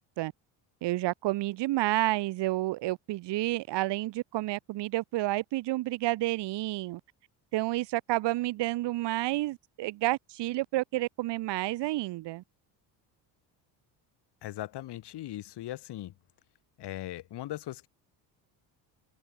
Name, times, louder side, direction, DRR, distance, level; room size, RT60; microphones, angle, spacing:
voice 1, 0.8-7.0 7.5-12.4, right 17 dB, 70° right, 1.8 m, -30 dB
voice 2, 14.4-16.1 16.8-17.9, left 14 dB, 65° left, 4.2 m, -39 dB
cardioid pair, 105°, 43 cm